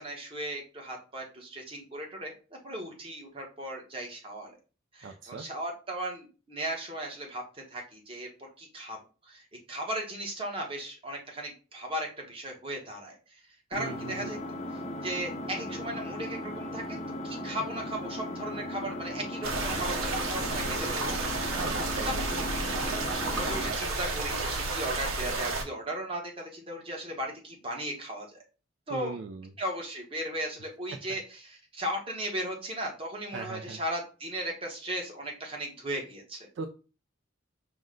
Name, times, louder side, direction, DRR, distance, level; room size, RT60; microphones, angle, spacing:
voice 1, 0.0-2.3 2.6-4.5 4.9-9.0 9.3-13.4 13.7-14.4 15.0-17.0 17.2-21.5 22.0-22.4 23.3-28.4 28.9-29.2 29.6-36.7, right 1 dB, 25° right, 1 dB, 1.0 m, -37 dB
voice 2, 5.0-5.5 13.7-14.3 21.5-22.5 28.9-29.5 33.3-33.8 36.6-36.7, right 4 dB, 60° right, 6 dB, 0.3 m, -39 dB
Engine, 13.7-23.7, left 1 dB, 30° left, 0.5 m, -37 dB
sound 1, 19.4-25.6, right 2 dB, 85° right, 0.7 m, -31 dB
4.9 x 2.1 x 3.7 m, 0.35 s
head